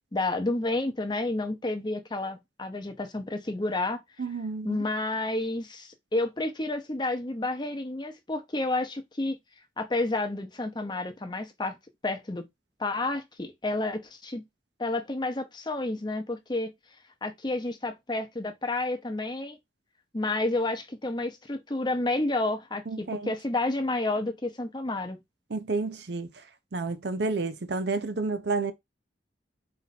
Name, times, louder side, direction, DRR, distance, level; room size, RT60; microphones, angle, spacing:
voice 1, 0.1-4.0 4.6-9.4 9.8-11.8 12.0-12.4 12.8-14.4 14.8-16.7 17.2-19.6 20.1-25.2, left 2 dB, 25° left, 0.8 m, -30 dB
voice 2, 4.2-4.8 22.9-23.3 25.5-26.3 26.7-28.7, right 3 dB, 65° right, 0.6 m, -30 dB
4.2 x 2.6 x 4.1 m
head